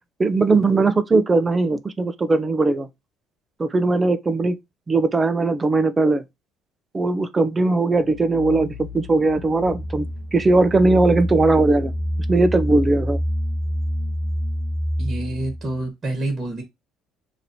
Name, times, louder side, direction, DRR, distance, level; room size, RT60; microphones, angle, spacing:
voice 1, 0.2-2.9 3.6-4.6 4.9-6.2 6.9-10.1 10.3-11.9 12.3-13.2, right 3 dB, 25° right, 0.5 m, -19 dB
sound 1, 7.9-15.8, equal, 70° left, 0.8 m, -27 dB
voice 2, 15.0-16.6, right 2 dB, 45° right, 1.3 m, -27 dB
3.0 x 2.6 x 4.1 m
supercardioid pair, 70°, 0 cm